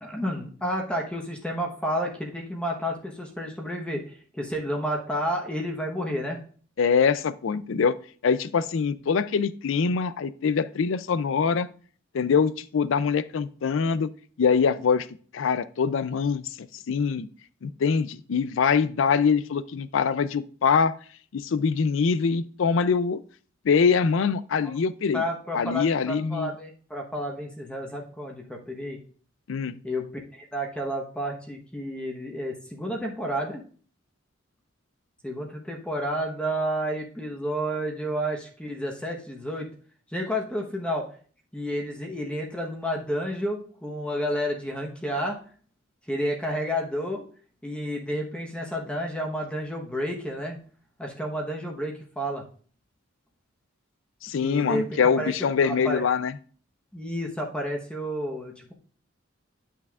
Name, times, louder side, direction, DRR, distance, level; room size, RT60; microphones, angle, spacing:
voice 1, 0.0-6.4 24.6-24.7 25.1-29.0 29.8-30.1 30.3-33.6 35.2-39.7 40.1-41.1 41.5-45.4 46.1-47.2 47.6-50.6 51.0-52.4 54.4-56.0 56.9-58.7, equal, 5° left, 0 dB, 1.0 m, -31 dB
voice 2, 6.8-8.0 8.2-11.7 12.1-14.1 14.4-15.1 15.3-16.5 16.9-17.3 17.6-21.0 21.3-23.2 23.6-25.2 25.5-26.5 29.5-29.8 54.2-56.4, left 6 dB, 70° left, 16 dB, 0.4 m, -24 dB
10.5 x 6.0 x 2.4 m, 0.43 s
head